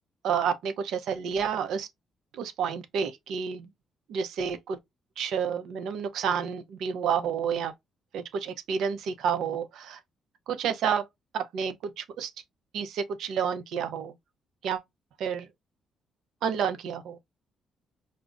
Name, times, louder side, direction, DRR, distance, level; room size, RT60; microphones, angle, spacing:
voice 1, 0.2-1.9 2.3-3.7 4.1-4.8 5.2-7.7 8.1-10.0 10.5-11.0 11.3-12.3 12.7-14.1 14.6-14.8 15.2-15.5 16.4-17.2, right 7 dB, 80° right, 0.5 m, -30 dB
5.0 x 2.0 x 2.3 m
cardioid pair, 90°, 0 cm